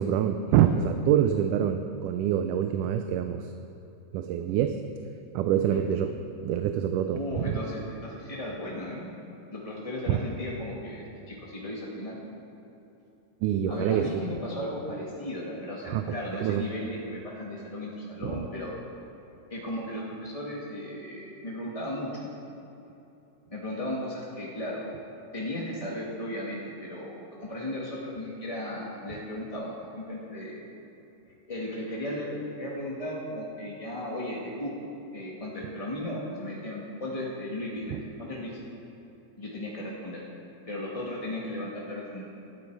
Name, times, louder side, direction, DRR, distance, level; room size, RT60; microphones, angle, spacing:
voice 1, 0.0-3.5 4.1-4.8 5.3-6.1 6.4-7.6 10.1-10.2 13.4-14.2 15.8-16.0 16.4-16.7 18.2-18.4, right 9 dB, 85° right, 7 dB, 2.2 m, -25 dB
voice 2, 7.1-9.1 9.5-12.2 13.7-18.8 19.5-22.3 23.5-24.9 25.3-30.6 31.5-34.7 35.1-38.6 39.4-40.2 40.7-42.2, left 1 dB, 20° left, -4 dB, 1.0 m, -35 dB
19.5 x 13.0 x 4.7 m, 3.0 s
omnidirectional pair, 3.6 m